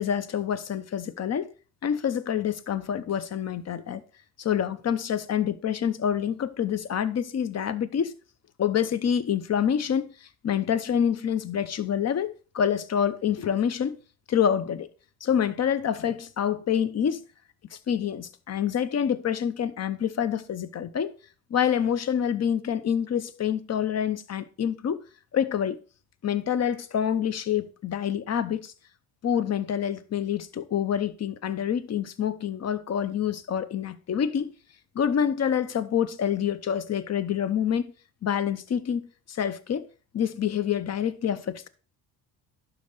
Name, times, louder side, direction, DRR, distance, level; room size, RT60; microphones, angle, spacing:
voice 1, 0.0-1.5 1.8-4.0 4.4-8.1 8.6-10.0 10.4-14.0 14.3-14.9 15.2-17.2 17.7-21.1 21.5-25.0 25.3-25.8 26.2-28.7 29.2-34.5 34.9-37.8 38.2-39.9 40.1-41.7, left 8 dB, 35° left, 0.7 m, -27 dB
11.5 x 4.0 x 3.9 m
hypercardioid pair, 50°, 47 cm